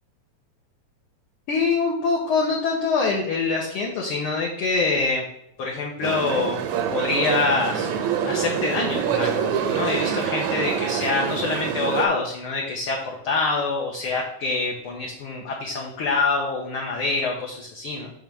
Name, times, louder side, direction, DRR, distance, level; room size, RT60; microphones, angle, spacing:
voice 1, 1.5-5.2 5.6-6.6 6.9-7.9 8.2-13.0 13.2-18.1, left 4 dB, 65° left, -1 dB, 1.4 m, -25 dB
sound 1, 6.0-12.1, right 8 dB, 80° right, 2.0 m, -26 dB
7.0 x 3.1 x 6.1 m, 0.74 s
omnidirectional pair, 3.3 m